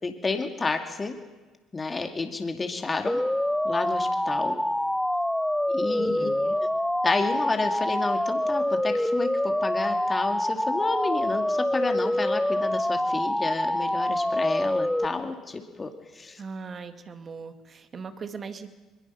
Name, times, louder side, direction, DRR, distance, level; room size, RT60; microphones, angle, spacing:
voice 1, 0.0-1.1 1.7-3.2 3.6-4.6 5.7-6.7 7.0-16.4, left 3 dB, 30° left, 5 dB, 2.6 m, -30 dB
sound 1, 3.1-15.0, left 1 dB, 5° left, 0.6 m, -26 dB
voice 2, 5.9-6.5 16.4-18.7, right 5 dB, 45° right, 8 dB, 2.2 m, -39 dB
22.5 x 22.0 x 5.9 m, 1.3 s
hypercardioid pair, 65°, 0 cm